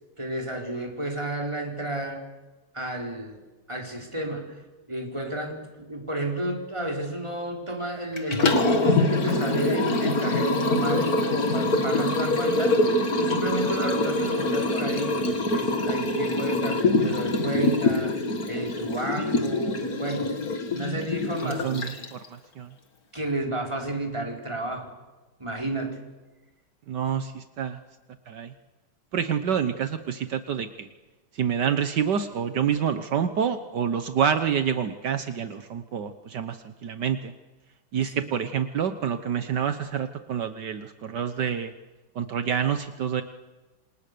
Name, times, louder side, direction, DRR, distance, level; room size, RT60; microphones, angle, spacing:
voice 1, 0.2-2.2 2.7-3.4 3.7-4.6 4.9-20.3 20.7-22.1 23.1-24.9 25.4-26.0 38.0-38.2, right 1 dB, 15° right, 1 dB, 4.6 m, -32 dB
Liquid, 8.2-22.3, left 2 dB, 55° left, 2.7 m, -25 dB
voice 2, 21.4-22.7 26.9-27.8 28.3-28.5 29.1-30.9 31.3-37.3 37.9-41.7 42.1-43.2, right 8 dB, 70° right, 9 dB, 1.7 m, -27 dB
27.5 x 27.5 x 6.9 m, 1.2 s
omnidirectional pair, 1.9 m